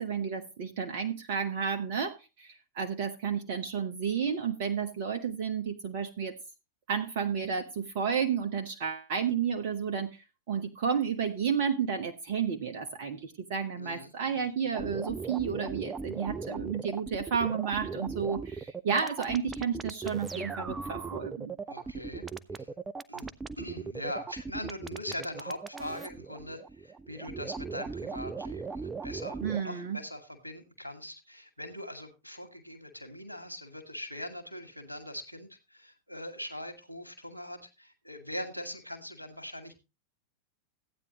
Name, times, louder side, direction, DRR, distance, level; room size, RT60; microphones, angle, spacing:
voice 1, 0.0-6.3 6.9-21.5 29.4-30.0, right 7 dB, 50° right, 1.1 m, -32 dB
voice 2, 13.8-14.5 21.7-22.3 22.5-22.7 23.1-23.3 23.6-39.8, left 1 dB, 90° right, 1.9 m, -41 dB
sound 1, 14.7-29.6, right 4 dB, 15° right, 0.6 m, -38 dB
15.0 x 9.2 x 3.0 m
figure-of-eight pair, 90°, 0 cm